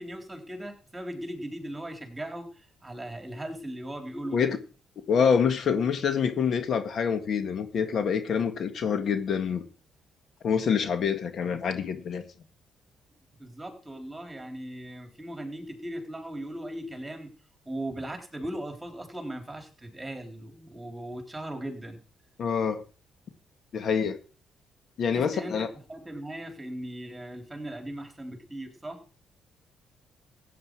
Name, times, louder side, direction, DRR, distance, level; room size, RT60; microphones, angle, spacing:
voice 1, 0.0-4.5 13.4-17.3 17.7-22.0 25.1-29.0, right 1 dB, 10° right, 3.9 m, -38 dB
voice 2, 5.1-9.6 10.4-12.2 22.4-22.8 23.7-24.2 25.0-25.7, left 6 dB, 60° left, 1.7 m, -26 dB
15.5 x 9.3 x 4.9 m
cardioid pair, 90°, 0 cm